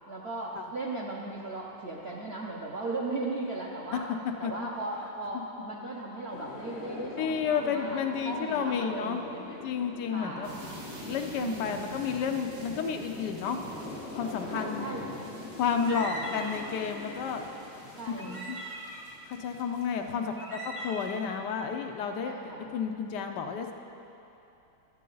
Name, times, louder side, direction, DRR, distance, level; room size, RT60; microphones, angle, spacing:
voice 1, 0.1-4.1 4.4-9.6 10.1-10.6 11.4-11.9 14.5-15.3 15.8-16.4 18.0-18.4 20.0-20.3 22.2-22.7, right 2 dB, 90° right, -4 dB, 0.5 m, -37 dB
sound 1, 6.3-19.8, left 3 dB, 40° left, 1.0 m, -44 dB
voice 2, 7.2-9.2 9.6-10.5 11.1-13.6 14.1-14.9 15.6-17.4 18.1-18.6 19.3-22.3 22.7-23.7, left 6 dB, 70° left, 4 dB, 1.0 m, -31 dB
sound 2, 10.4-20.5 20.9-21.2, right 3 dB, 60° right, 1.9 m, -48 dB
sound 3, 15.8-16.6 17.2-17.3 18.2-19.0 19.8-19.9 20.2-21.2, right 1 dB, 35° right, 1.3 m, -40 dB
12.5 x 8.3 x 3.9 m, 2.9 s
omnidirectional pair, 2.2 m